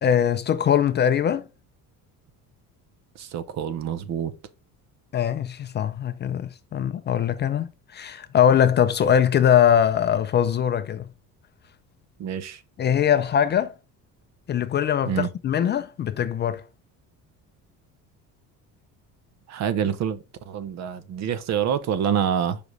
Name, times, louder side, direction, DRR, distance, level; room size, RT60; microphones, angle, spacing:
voice 1, 0.0-1.4 5.1-11.0 12.8-13.7 14.5-16.6, left 9 dB, 30° left, 0.4 m, -22 dB
voice 2, 3.2-4.3 12.2-12.6 15.1-15.3 19.5-20.2 20.5-22.6, right 8 dB, 50° right, 0.8 m, -26 dB
5.2 x 5.0 x 3.9 m
cardioid pair, 145°, 35 cm